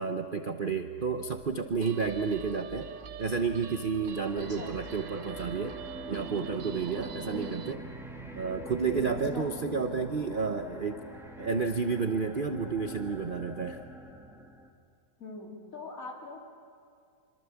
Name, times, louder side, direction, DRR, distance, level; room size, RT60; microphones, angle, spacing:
voice 1, 0.0-2.9 3.2-5.8 6.1-7.8 8.3-11.0 11.4-13.8, right 5 dB, 40° right, 6 dB, 0.8 m, -31 dB
sound 1, 0.7-6.2, right 3 dB, 60° right, 1.3 m, -50 dB
Guitar, 1.8-7.7, right 8 dB, 90° right, 1.5 m, -46 dB
sound 2, 4.1-14.7, right 1 dB, ahead, 2.5 m, -43 dB
voice 2, 7.3-7.6 9.1-9.5 15.2-16.4, left 2 dB, 50° left, -1 dB, 4.1 m, -43 dB
26.0 x 26.0 x 7.2 m, 2.2 s
omnidirectional pair, 1.9 m